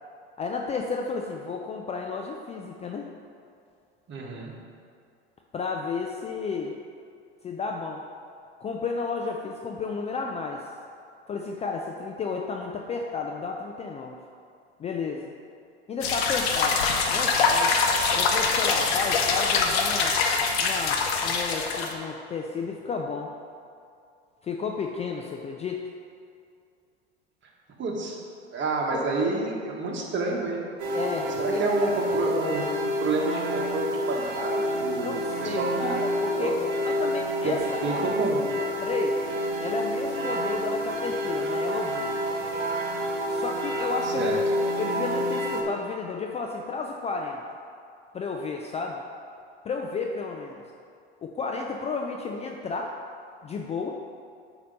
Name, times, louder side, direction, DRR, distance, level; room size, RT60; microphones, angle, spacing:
voice 1, 0.4-3.1 5.5-6.7 7.4-8.0 8.6-10.6 11.3-14.2 14.8-15.3 15.9-16.8 17.1-17.7 18.1-20.2 20.6-23.3 24.4-25.8 28.9-29.1 30.9-31.9 32.1-32.2 35.0-36.6 36.9-38.0 38.6-39.2 39.6-42.3 43.3-47.4 48.1-49.0 49.6-50.6 51.2-52.9 53.4-53.9, left 4 dB, 20° left, 1 dB, 0.4 m, -32 dB
voice 2, 4.1-4.5 27.8-28.2 28.5-30.7 31.3-36.0 36.3-36.5 37.4-38.5 44.0-44.4, right 2 dB, 35° right, -1 dB, 1.3 m, -29 dB
sound 1, 16.0-21.9, left 4 dB, 65° left, 0.8 m, -24 dB
sound 2, 30.8-45.6, equal, 65° right, 1.2 m, -28 dB
8.3 x 2.9 x 5.3 m, 2.3 s
hypercardioid pair, 80°, 33 cm